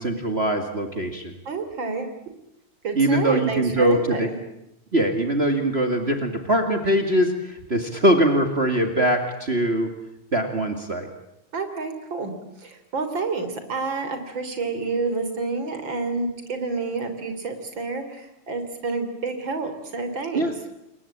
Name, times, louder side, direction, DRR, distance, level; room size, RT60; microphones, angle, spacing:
voice 1, 0.0-1.3 2.9-4.3 4.9-9.9 10.3-11.1 20.3-20.5, right 1 dB, 30° right, 5 dB, 2.4 m, -22 dB
voice 2, 1.5-2.1 2.8-4.4 11.5-12.3 12.6-20.5, right 4 dB, 60° right, 8 dB, 4.1 m, -29 dB
28.5 x 22.5 x 8.7 m, 0.83 s
omnidirectional pair, 2.4 m